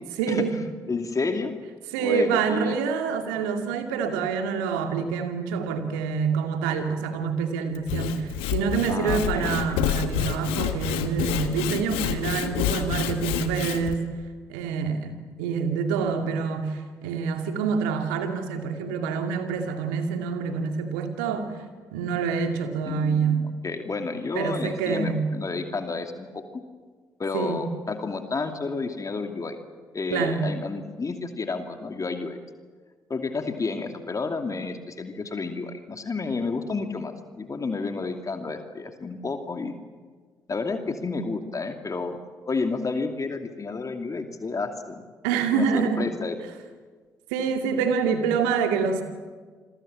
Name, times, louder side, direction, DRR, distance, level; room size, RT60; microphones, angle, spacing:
voice 1, 0.2-0.6 1.9-14.1 14.5-21.5 21.9-23.5 24.3-25.2 27.3-27.6 30.1-30.4 45.2-46.0 47.3-49.0, right 6 dB, 75° right, 5 dB, 2.4 m, -26 dB
voice 2, 0.9-1.5 2.0-2.8 8.9-9.6 22.9-26.4 27.2-29.6 29.9-32.4 33.1-39.8 40.5-42.2 42.5-45.0 45.5-46.4, left 4 dB, 35° left, 5 dB, 2.6 m, -31 dB
Sawing / Wood, 7.7-14.0, left 11 dB, 70° left, 1.4 m, -28 dB
28.5 x 22.5 x 7.5 m, 1.5 s
figure-of-eight pair, 40°, 10 cm